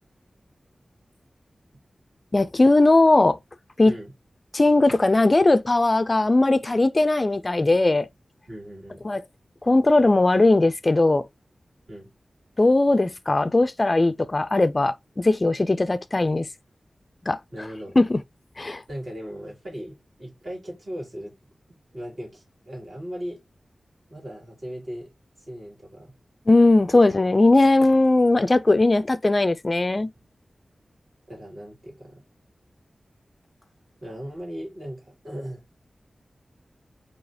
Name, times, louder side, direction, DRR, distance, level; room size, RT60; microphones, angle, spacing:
voice 1, 2.3-3.4 3.8-3.9 4.5-8.1 9.0-9.2 9.6-11.2 12.6-16.5 17.3-17.4 18.0-18.2 18.6-18.8 26.5-30.1, left 2 dB, 35° left, 0.3 m, -19 dB
voice 2, 8.5-9.0 11.9-12.1 17.5-18.0 18.9-21.3 21.9-23.4 24.1-25.1 25.4-26.1 26.9-27.0 30.0-30.1 31.3-32.2 34.0-35.6, equal, 60° right, 3.0 m, -37 dB
4.7 x 2.8 x 2.6 m
wide cardioid pair, 100°, 0 cm